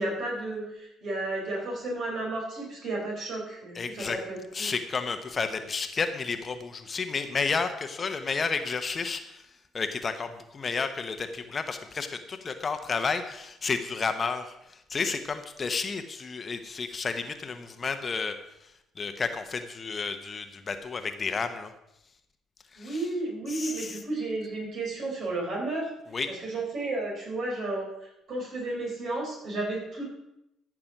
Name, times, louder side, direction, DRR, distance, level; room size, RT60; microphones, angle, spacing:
voice 1, 0.0-4.7 22.8-25.9 26.3-30.1, right 2 dB, 55° right, -2 dB, 4.9 m, -33 dB
voice 2, 3.7-4.2 4.5-9.5 9.7-21.7 22.7-23.1 23.5-24.0 26.1-26.3, left 4 dB, 35° left, 8 dB, 1.0 m, -31 dB
14.0 x 6.2 x 6.0 m, 0.86 s
figure-of-eight pair, 50°, 0 cm